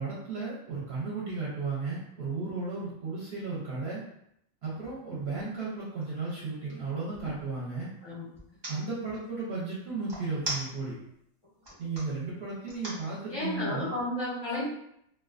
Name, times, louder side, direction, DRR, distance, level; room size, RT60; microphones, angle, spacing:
voice 1, 0.0-4.0 4.6-7.9 8.7-10.9 11.8-13.9, right 4 dB, 60° right, -7 dB, 0.8 m, -34 dB
sound 1, 5.2-5.4 5.9-7.4 8.3-8.7 10.1-11.1 11.5-12.0 12.7-13.0, right 1 dB, 30° right, 0.5 m, -38 dB
voice 2, 13.3-14.7, left 1 dB, 35° left, -7 dB, 0.4 m, -32 dB
2.4 x 2.2 x 2.4 m, 0.74 s
omnidirectional pair, 1.4 m